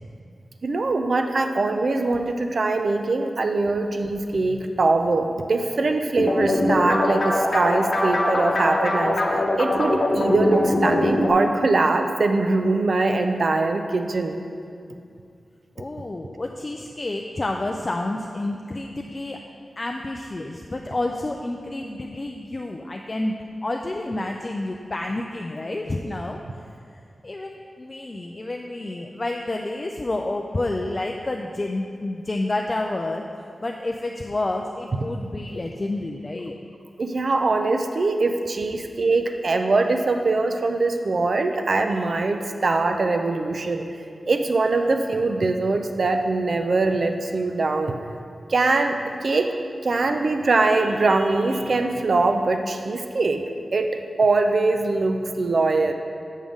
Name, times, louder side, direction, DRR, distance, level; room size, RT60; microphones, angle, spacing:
voice 1, 0.6-9.2 9.6-14.4 37.0-43.9 44.3-48.0 48.5-49.5 49.8-53.4 53.7-55.9, right 3 dB, 60° right, 6 dB, 0.5 m, -22 dB
sound 1, 6.2-11.3, left 1 dB, 55° left, 0.9 m, -22 dB
voice 2, 15.8-19.4 19.8-26.4 27.2-33.2 33.6-36.6, left 2 dB, 35° left, 2 dB, 0.3 m, -29 dB
7.3 x 3.5 x 6.3 m, 2.4 s
wide cardioid pair, 100°, 0 cm